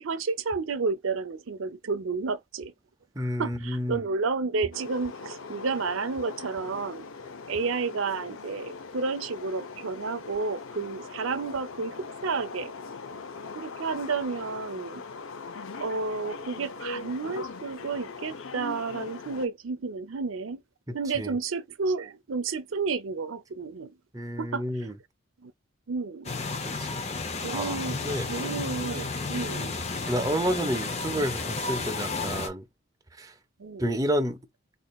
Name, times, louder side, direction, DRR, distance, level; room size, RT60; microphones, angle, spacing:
voice 1, 0.0-2.7 3.2-7.1 7.5-12.7 13.5-15.0 15.8-20.6 20.9-23.9 24.4-24.6 25.4-25.5 25.9-26.3 27.4-28.0 28.3-29.7 33.6-33.9, right 4 dB, 80° right, 0.6 m, -31 dB
voice 2, 3.2-4.0 20.9-21.4 24.1-24.9 26.7-27.2 27.5-28.3 29.6-29.7 30.1-32.7 33.2-33.3 33.8-34.4, equal, 15° right, 0.5 m, -30 dB
sound 1, 4.7-19.5, left 4 dB, 85° left, 0.6 m, -41 dB
sound 2, 26.2-32.5, left 3 dB, 30° left, 0.6 m, -32 dB
4.2 x 2.5 x 2.3 m
head